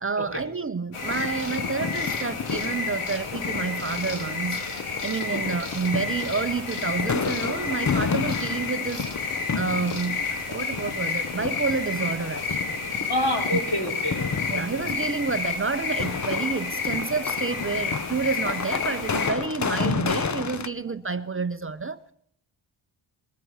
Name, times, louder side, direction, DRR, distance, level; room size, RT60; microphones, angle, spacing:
voice 1, 0.0-4.6 5.0-9.1 9.5-12.8 13.5-13.6 14.5-22.1, right 4 dB, 25° right, 0.5 m, -29 dB
sound 1, 0.9-19.3, left 4 dB, 90° left, 2.2 m, -31 dB
sound 2, 1.0-20.7, left 6 dB, 35° left, 0.7 m, -32 dB
voice 2, 13.1-14.8, left 1 dB, 50° left, 4.0 m, -28 dB
20.5 x 13.5 x 4.8 m
cardioid pair, 60°, 49 cm